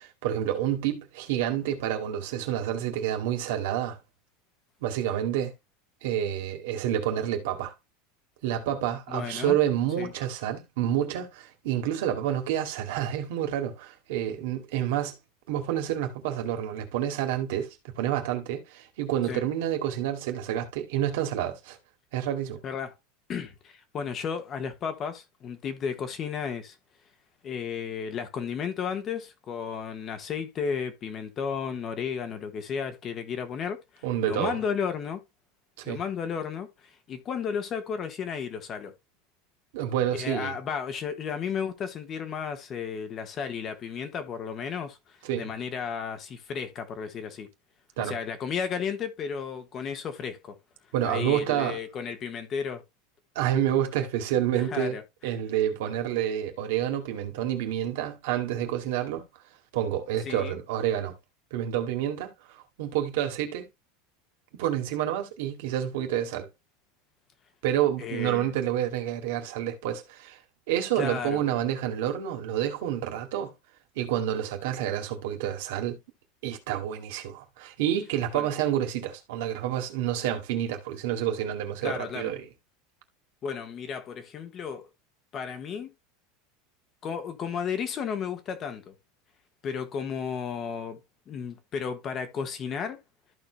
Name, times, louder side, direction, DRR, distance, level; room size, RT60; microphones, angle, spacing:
voice 1, 0.0-4.0 4.8-5.5 6.0-7.7 8.4-15.2 15.5-21.8 22.1-22.6 34.0-34.6 35.8-36.0 39.7-40.6 45.2-45.5 48.0-48.2 50.9-51.8 53.4-55.0 55.2-59.2 59.7-61.1 61.5-63.7 64.5-66.5 67.6-70.4 70.7-73.5 74.0-76.0 76.4-82.5, right 11 dB, 70° right, 2.3 m, -29 dB
voice 2, 9.1-9.6 10.0-10.1 19.3-19.4 22.6-22.9 23.3-26.8 27.4-35.2 35.8-38.9 40.1-47.5 48.0-50.6 51.0-52.8 54.5-55.0 60.2-60.6 68.0-68.5 70.9-71.4 78.3-78.5 81.8-82.3 83.4-84.9 85.3-85.9 87.0-88.9 89.6-91.0 91.3-93.0, left 6 dB, 25° left, 1.3 m, -33 dB
14.0 x 4.9 x 2.2 m
supercardioid pair, 165°, 0 cm